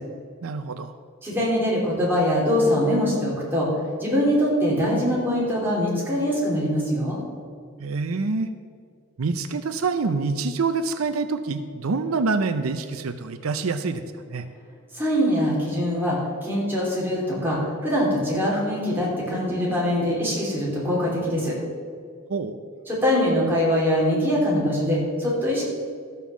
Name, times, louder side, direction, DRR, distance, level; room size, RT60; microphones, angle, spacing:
voice 1, 0.4-0.9 7.8-8.5 9.2-14.0 14.3-14.5 22.3-22.6, right 4 dB, 85° right, 9 dB, 0.6 m, -26 dB
voice 2, 1.2-3.7 4.0-7.2 14.9-21.6 22.9-25.6, equal, 10° right, -6 dB, 3.2 m, -23 dB
13.0 x 5.5 x 7.2 m, 2.1 s
head